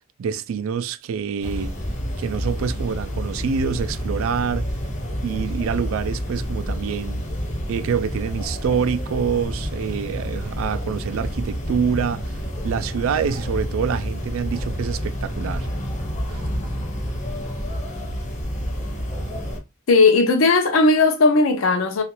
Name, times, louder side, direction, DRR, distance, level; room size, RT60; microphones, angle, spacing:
voice 1, 0.2-1.7 2.2-4.7 5.2-7.2 7.7-12.3 12.6-15.7 16.3-16.4, right 6 dB, 80° right, 0.3 m, -26 dB
sound 1, 1.4-19.6, equal, 35° left, 0.7 m, -29 dB
voice 2, 19.9-22.0, left 3 dB, 80° left, 0.5 m, -16 dB
2.9 x 2.4 x 2.9 m
head